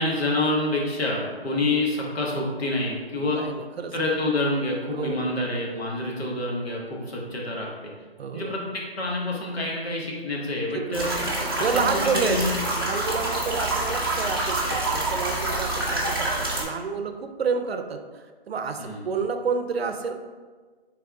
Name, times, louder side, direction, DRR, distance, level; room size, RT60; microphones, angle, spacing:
voice 1, 0.0-3.4 3.9-7.7 8.3-11.1 11.6-12.5 18.8-19.0, left 2 dB, 80° left, -2 dB, 1.3 m, -27 dB
voice 2, 3.2-3.9 4.9-5.4 8.2-8.5 10.7-12.4 12.7-20.1, right 5 dB, 75° right, 7 dB, 0.5 m, -29 dB
sound 1, 10.9-16.6, right 2 dB, 25° right, 0.5 m, -27 dB
3.6 x 3.4 x 3.4 m, 1.4 s
hypercardioid pair, 165°, 31 cm